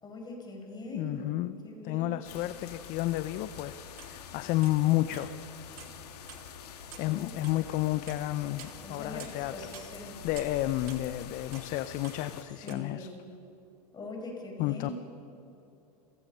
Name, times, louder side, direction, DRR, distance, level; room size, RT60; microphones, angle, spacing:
voice 1, 0.0-2.3 7.1-7.3 8.8-9.2 9.5-10.2 12.6-13.2 13.9-14.9, left 2 dB, 20° left, 1 dB, 5.4 m, -42 dB
voice 2, 0.9-1.5 1.8-5.3 6.6-9.5 10.2-13.1 14.6-14.9, left 16 dB, 40° left, 12 dB, 0.7 m, -31 dB
sound 1, 2.2-12.4, left 8 dB, 70° left, 2.1 m, -46 dB
sound 2, 3.6-5.3 5.7-6.0 6.3-9.4 9.7-12.7, right 11 dB, 60° right, 2.4 m, -49 dB
29.0 x 16.0 x 5.6 m, 2.8 s
hypercardioid pair, 110°, 21 cm